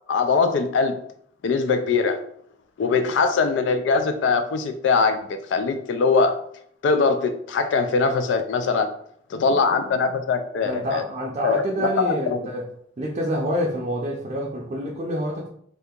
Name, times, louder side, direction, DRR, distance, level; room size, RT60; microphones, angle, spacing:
voice 1, 0.1-1.0 1.4-2.2 2.8-6.4 6.8-8.9 9.3-11.0 11.4-12.4, left 4 dB, 70° left, 0.3 m, -22 dB
voice 2, 10.6-12.6 13.0-15.5, equal, 35° right, 0.5 m, -27 dB
2.7 x 2.5 x 3.6 m
head